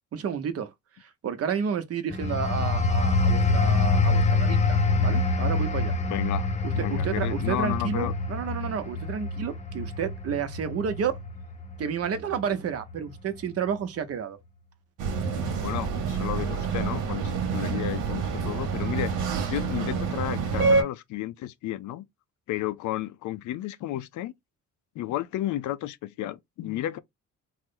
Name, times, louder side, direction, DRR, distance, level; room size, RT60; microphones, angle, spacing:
voice 1, 0.1-0.7 1.0-5.9 6.6-11.1 11.8-14.4, right 7 dB, 50° right, 0.7 m, -31 dB
sound 1, 2.1-12.5 12.9-13.2, left 3 dB, 25° left, 0.7 m, -26 dB
voice 2, 6.1-6.5 6.7-8.1 15.6-22.1 22.5-24.3 25.0-27.0, left 13 dB, 75° left, 0.5 m, -32 dB
sound 2, 15.0-20.8, right 4 dB, 85° right, 0.8 m, -27 dB
3.0 x 2.0 x 3.6 m
cardioid pair, 90°, 30 cm